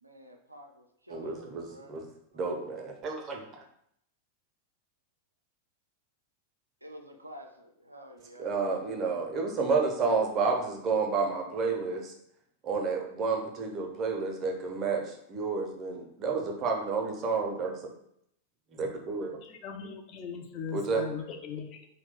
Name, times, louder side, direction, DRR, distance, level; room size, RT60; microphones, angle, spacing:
voice 1, 0.0-2.0 2.3-2.6 6.8-8.5, equal, 85° right, 0.3 m, -50 dB
voice 2, 1.1-2.1 2.3-3.6 8.4-12.1 12.6-17.9 18.7-19.4 20.7-21.1, right 4 dB, 30° right, 0.5 m, -30 dB
voice 3, 19.4-21.9, left 7 dB, 35° left, 0.4 m, -39 dB
2.8 x 2.1 x 3.4 m
figure-of-eight pair, 90°, 0 cm